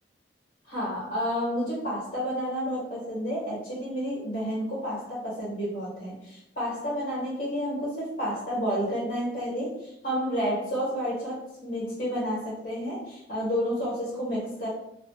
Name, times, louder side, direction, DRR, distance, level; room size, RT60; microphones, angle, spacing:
voice 1, 0.7-14.7, equal, 55° left, -8 dB, 1.1 m, -30 dB
3.4 x 2.3 x 2.3 m, 0.81 s
head